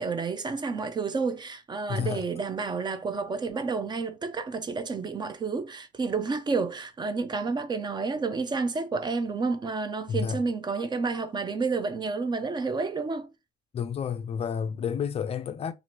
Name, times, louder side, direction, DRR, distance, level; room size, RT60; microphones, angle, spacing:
voice 1, 0.0-13.3, right 4 dB, 25° right, 0.4 m, -30 dB
voice 2, 1.9-2.2 10.1-10.4 13.7-15.7, left 7 dB, 35° left, 0.4 m, -30 dB
2.7 x 2.5 x 3.0 m
cardioid pair, 110°, 17 cm